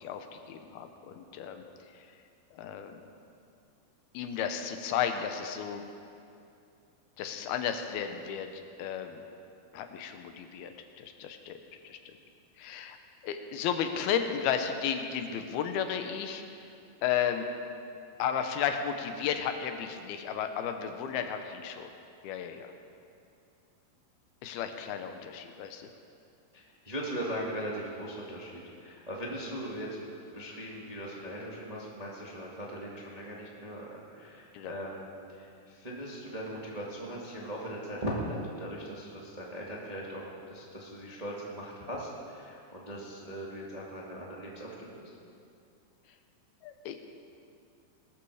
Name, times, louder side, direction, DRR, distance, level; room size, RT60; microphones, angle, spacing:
voice 1, 0.0-1.6 1.9-2.1 2.5-3.0 4.1-5.8 7.2-9.2 9.7-12.0 12.6-13.0 13.2-16.4 17.0-17.5 18.2-21.9 22.2-22.7 24.4-25.9 34.5-34.8 46.6-47.0, left 8 dB, 75° left, 7 dB, 2.7 m, -33 dB
voice 2, 26.5-45.1, equal, 40° right, -4 dB, 0.5 m, -39 dB
20.0 x 13.5 x 4.9 m, 2.5 s
omnidirectional pair, 4.7 m